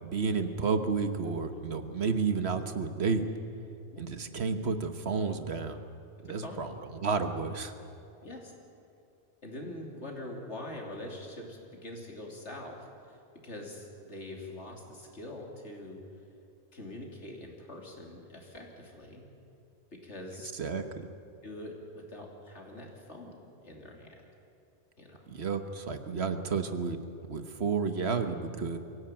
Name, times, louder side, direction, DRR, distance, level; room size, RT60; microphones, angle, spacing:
voice 1, 0.0-3.2 4.0-5.8 6.2-7.7 20.5-20.8 25.3-27.0 27.3-28.8, right 5 dB, 65° right, 8 dB, 1.5 m, -31 dB
voice 2, 6.3-6.6 8.2-8.5 9.4-12.8 13.1-13.2 13.4-16.0 16.7-19.3 20.0-20.5 20.8-20.9 21.4-23.3 23.6-24.1 25.0-25.2, left 1 dB, 80° left, 0 dB, 3.4 m, -44 dB
23.5 x 16.5 x 8.9 m, 2.7 s
omnidirectional pair, 1.2 m